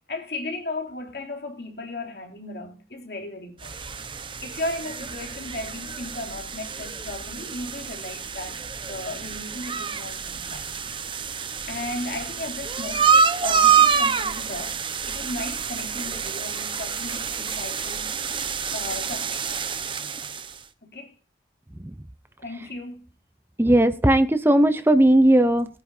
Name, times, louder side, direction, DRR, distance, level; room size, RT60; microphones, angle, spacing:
voice 1, 0.1-3.8 4.1-8.6 8.9-10.7 11.1-11.3 11.7-18.1 18.7-19.7 20.8-21.1 22.4-23.1, left 2 dB, 60° left, 3.0 m, -35 dB
sound 1, 3.6-20.6, right 6 dB, 30° right, 1.0 m, -27 dB
voice 2, 23.6-25.7, right 1 dB, 15° right, 0.6 m, -17 dB
22.0 x 9.7 x 2.7 m
head